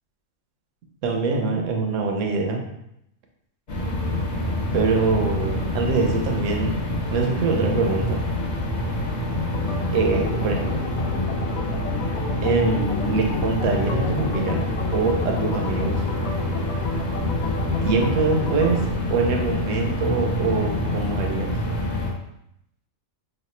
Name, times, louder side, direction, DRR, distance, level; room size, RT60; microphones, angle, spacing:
voice 1, 1.0-2.6 4.7-6.8 7.1-8.2 9.9-10.8 12.4-14.6 14.9-16.0 17.8-21.5, right 4 dB, 65° right, 2 dB, 0.9 m, -24 dB
sound 1, 3.7-22.1, left 1 dB, 40° left, 0.7 m, -26 dB
Organ, 9.5-18.9, left 4 dB, 70° left, 1.0 m, -34 dB
3.1 x 2.3 x 4.1 m, 0.79 s
omnidirectional pair, 1.5 m